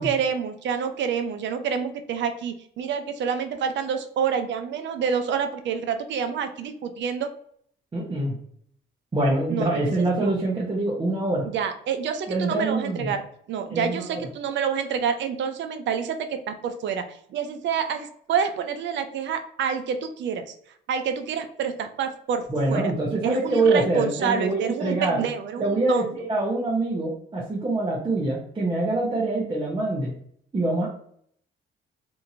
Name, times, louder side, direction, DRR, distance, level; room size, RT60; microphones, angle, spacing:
voice 1, 0.0-7.3 9.5-10.3 11.4-13.2 13.5-20.5 20.9-22.9 23.2-26.1, right 7 dB, 65° right, 8 dB, 0.5 m, -28 dB
voice 2, 7.9-8.4 9.1-11.4 12.3-13.1 13.7-14.3 22.5-25.2 25.6-30.1 30.5-30.9, right 2 dB, 25° right, -5 dB, 0.8 m, -25 dB
2.8 x 2.6 x 2.7 m, 0.65 s
cardioid pair, 90°, 20 cm